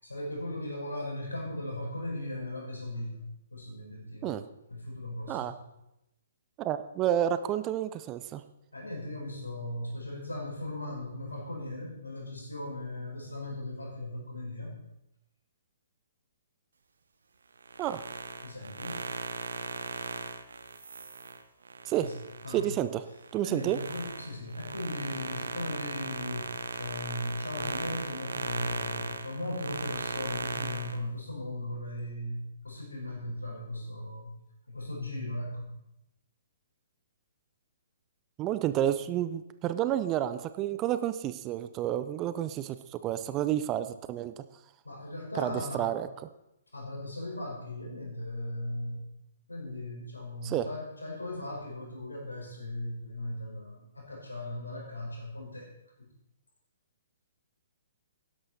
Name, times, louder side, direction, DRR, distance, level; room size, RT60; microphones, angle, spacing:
voice 1, 0.0-4.3 4.7-5.6 8.7-14.7 18.4-19.0 22.0-22.2 22.4-22.8 23.4-34.3 34.7-35.7 44.8-46.0 46.7-49.1 49.5-55.7 56.0-56.1, left 1 dB, 80° left, -2 dB, 4.9 m, -38 dB
voice 2, 6.6-8.4 17.8-18.0 21.9-22.1 22.5-23.0 23.3-23.8 38.4-44.4 45.3-46.1 50.4-50.7, right 11 dB, 25° right, 12 dB, 0.6 m, -30 dB
sound 1, 17.6-22.7 23.1-31.0, right 4 dB, 65° right, 1.0 m, -37 dB
12.5 x 11.0 x 4.2 m, 0.87 s
figure-of-eight pair, 125°, 0 cm